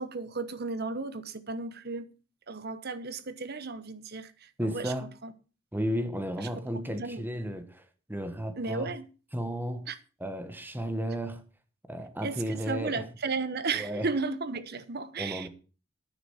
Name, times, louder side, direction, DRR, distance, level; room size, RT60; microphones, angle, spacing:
voice 1, 0.0-2.1 2.5-4.9 5.2-5.3 6.9-7.2 8.6-9.1 9.9-10.0 12.2-15.5, right 4 dB, 50° right, 1.1 m, -34 dB
voice 2, 4.6-5.1 5.7-7.8 8.1-8.9 9.3-9.9 10.2-11.4 11.9-13.0 13.7-14.1 15.2-15.5, equal, 10° right, 1.4 m, -33 dB
9.9 x 9.3 x 5.7 m
head